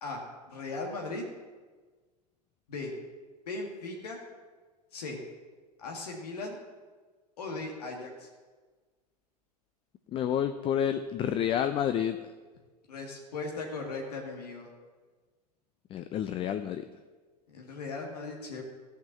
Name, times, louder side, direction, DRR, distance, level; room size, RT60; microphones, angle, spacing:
voice 1, 0.0-1.2 2.7-2.9 3.5-4.2 4.9-5.2 5.8-6.6 7.4-8.3 12.9-14.7 17.5-18.6, left 3 dB, 65° left, 0 dB, 2.1 m, -38 dB
voice 2, 10.1-12.2 15.9-16.8, left 9 dB, 25° left, 10 dB, 0.5 m, -29 dB
14.5 x 5.8 x 7.2 m, 1.4 s
figure-of-eight pair, 95°, 21 cm